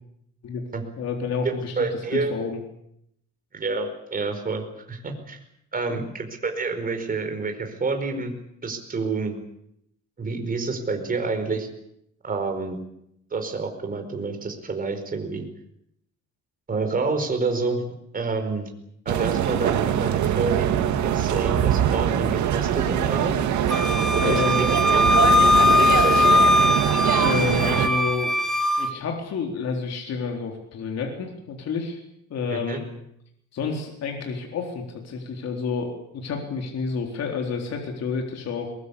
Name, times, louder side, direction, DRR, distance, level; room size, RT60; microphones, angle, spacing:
voice 1, 1.0-1.9 2.1-2.6 5.9-6.0 24.2-24.7 27.1-28.3 28.8-32.0 32.3-32.9 33.5-38.8, left 5 dB, 60° left, 2 dB, 4.0 m, -29 dB
voice 2, 1.8-2.3 3.5-5.4 5.7-8.3 8.6-9.4 10.2-11.7 12.2-12.8 13.3-15.5 16.7-17.8 18.1-18.7 19.0-23.4 24.1-26.4 32.5-32.8, right 4 dB, 30° right, 5 dB, 4.8 m, -28 dB
sound 1, 19.1-27.9, right 9 dB, 75° right, 2.3 m, -23 dB
Wind instrument woodwind instrument, 23.7-28.9, left 2 dB, ahead, 1.7 m, -20 dB
22.0 x 21.5 x 8.4 m, 0.77 s
cardioid pair, 135°, 29 cm